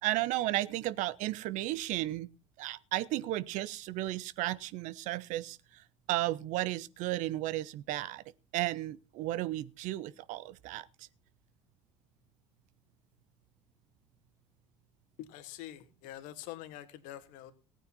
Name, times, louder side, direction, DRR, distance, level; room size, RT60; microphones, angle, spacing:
voice 1, 0.0-2.3 2.6-5.6 6.1-8.2 8.5-10.9, right 16 dB, 60° right, 0.8 m, -34 dB
voice 2, 15.2-17.5, left 13 dB, 65° left, 1.9 m, -45 dB
17.5 x 9.0 x 4.2 m
hypercardioid pair, 70°, 15 cm